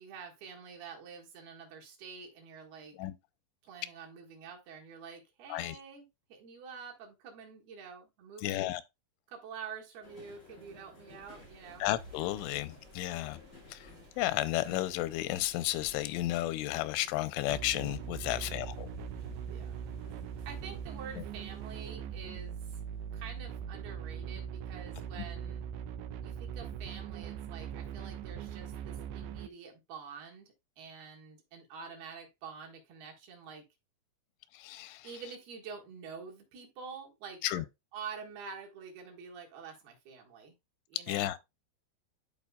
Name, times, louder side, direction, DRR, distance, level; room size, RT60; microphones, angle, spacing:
voice 1, 0.0-3.0 3.6-6.0 6.3-8.8 9.3-11.8 18.3-18.7 19.4-19.8 20.5-22.8 23.1-25.7 26.2-33.6 35.0-37.6 37.9-40.5 40.9-41.4, right 6 dB, 65° right, 3.2 m, -47 dB
voice 2, 8.4-8.8 11.8-13.4 13.7-13.9 14.2-18.9 25.2-25.3 34.5-35.1 37.4-37.7 41.1-41.4, left 16 dB, 85° left, 3.0 m, -33 dB
sound 1, 10.0-23.6, left 4 dB, 40° left, 0.8 m, -58 dB
sound 2, 11.2-21.9, equal, 40° right, 1.5 m, -56 dB
sound 3, 17.5-29.5, right 8 dB, 85° right, 2.4 m, -41 dB
12.5 x 4.6 x 2.3 m
omnidirectional pair, 5.4 m